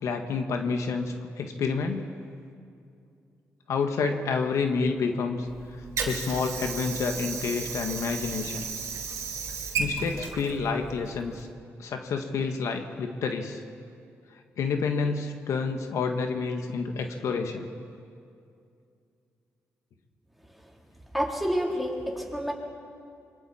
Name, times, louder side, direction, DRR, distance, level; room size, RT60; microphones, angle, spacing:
voice 1, 0.0-2.0 3.7-5.5 6.0-8.7 9.8-11.5 11.8-13.6 14.6-17.7, left 5 dB, 80° left, 5 dB, 1.6 m, -29 dB
Water / Sink (filling or washing), 5.5-11.5, right 5 dB, 75° right, 3.0 m, -34 dB
voice 2, 21.1-22.5, equal, ahead, -2 dB, 3.6 m, -28 dB
26.0 x 24.5 x 4.4 m, 2.4 s
cardioid pair, 85°, 5 cm